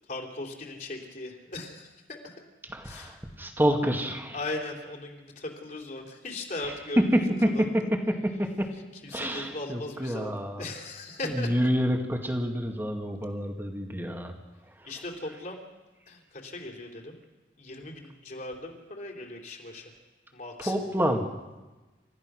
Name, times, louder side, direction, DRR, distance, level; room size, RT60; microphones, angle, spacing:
voice 1, 0.1-2.3 2.8-3.2 4.3-7.9 8.9-11.7 14.8-15.6 16.1-17.2 17.6-19.9 20.3-21.1, left 2 dB, 45° left, 1 dB, 3.5 m, -38 dB
voice 2, 2.7-4.4 6.6-8.7 9.1-10.6 11.2-14.3 20.6-21.2, equal, 10° right, 4 dB, 2.0 m, -27 dB
29.5 x 14.0 x 6.3 m, 1.2 s
head